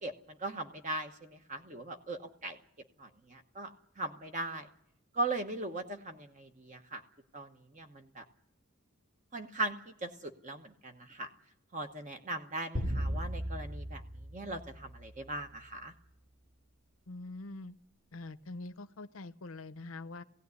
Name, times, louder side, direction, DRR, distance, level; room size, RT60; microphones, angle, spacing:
voice 1, 0.0-2.6 3.0-4.7 5.1-7.0 7.3-8.2 9.3-11.3 11.7-14.0 14.3-15.9, right 2 dB, 35° right, 6 dB, 1.0 m, -39 dB
sound 1, 12.7-15.3, equal, 60° right, 4.1 m, -37 dB
voice 2, 17.1-17.7 18.1-20.2, left 2 dB, 65° left, 13 dB, 0.8 m, -44 dB
19.0 x 16.5 x 9.6 m, 0.77 s
head